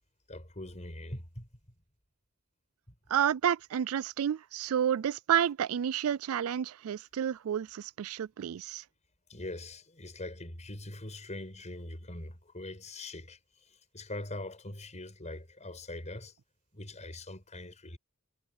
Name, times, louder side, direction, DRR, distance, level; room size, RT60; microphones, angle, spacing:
voice 1, 0.3-1.5 9.3-13.4 13.9-16.3 16.7-18.0, left 2 dB, 35° left, 6.2 m, -42 dB
voice 2, 3.1-8.8, right 9 dB, 80° right, 0.4 m, -30 dB
head